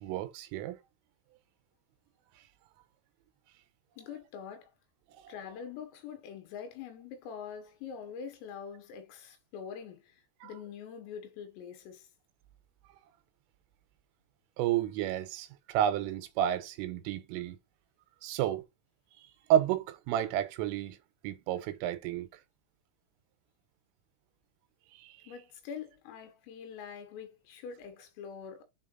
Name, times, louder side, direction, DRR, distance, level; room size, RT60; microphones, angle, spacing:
voice 1, 0.0-0.8 5.2-5.3 10.4-10.5 14.6-17.6 18.2-18.6 19.5-21.0 21.2-22.3 24.9-25.1, right 11 dB, 90° right, 3.5 m, -31 dB
voice 2, 4.0-4.7 5.3-12.1 25.3-28.6, left 7 dB, 85° left, 4.3 m, -44 dB
8.2 x 4.0 x 4.0 m
omnidirectional pair, 5.8 m